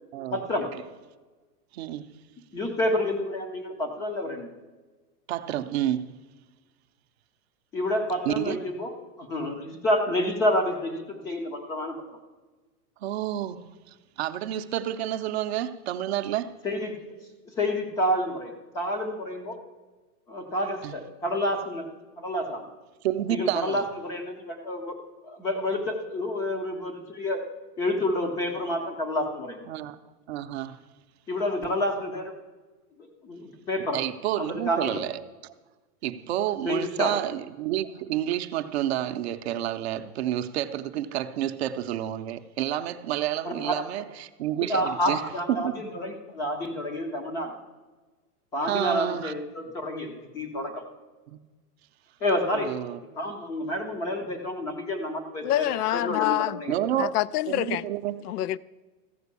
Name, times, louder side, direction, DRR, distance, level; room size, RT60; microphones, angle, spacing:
voice 1, 0.3-0.7 2.5-4.5 7.7-12.0 16.6-17.0 17.6-19.6 20.3-21.9 22.2-22.7 23.3-25.0 25.2-27.4 27.8-29.7 31.3-32.3 33.0-34.0 34.4-35.0 36.6-37.1 43.4-43.8 44.6-47.6 48.5-50.8 52.2-52.7 53.2-56.8, left 1 dB, 10° left, 0.4 m, -29 dB
voice 2, 1.7-2.1 5.3-6.1 8.3-8.6 13.0-16.5 20.8-21.0 23.0-23.8 29.7-30.0 30.3-30.8 33.9-35.5 36.0-45.2 45.5-45.7 48.7-49.3 51.3-51.4 52.5-53.0 56.7-57.1 57.5-58.2, right 12 dB, 45° right, 0.6 m, -29 dB
voice 3, 55.4-56.6 57.0-57.8 58.2-58.6, left 14 dB, 75° left, 0.5 m, -26 dB
14.0 x 5.1 x 8.2 m
supercardioid pair, 155°, 46 cm